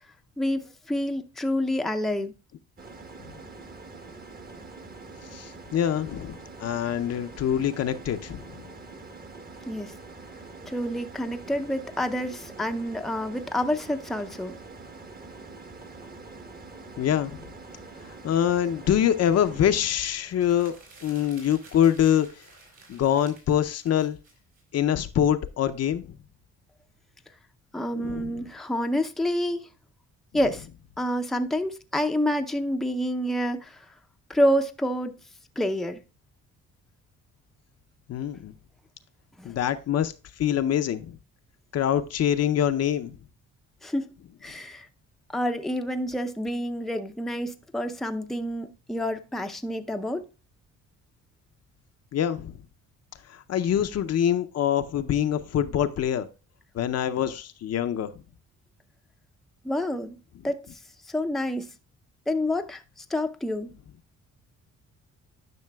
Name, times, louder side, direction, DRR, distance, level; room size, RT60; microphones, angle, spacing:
voice 1, 0.4-2.3 9.6-9.9 10.7-14.6 27.7-29.7 30.3-30.7 31.0-33.9 34.3-35.1 35.6-36.0 39.4-39.5 43.8-44.1 44.4-44.9 45.3-50.3 59.6-60.2 60.4-60.7 61.1-61.7 62.3-62.8 63.1-63.7, left 1 dB, ahead, 0.5 m, -28 dB
sound 1, 2.8-19.8, right 3 dB, 30° right, 1.1 m, -44 dB
voice 2, 5.3-8.7 17.0-17.4 18.2-20.7 21.0-22.3 22.9-24.2 24.7-26.2 28.0-28.3 38.1-38.5 39.4-40.1 40.4-41.2 41.7-43.2 52.1-52.5 53.3-56.3 56.7-58.1, left 10 dB, 55° left, 0.6 m, -25 dB
sound 2, 20.2-24.9, right 3 dB, 65° right, 4.2 m, -52 dB
10.5 x 5.7 x 2.3 m
cardioid pair, 90°, 30 cm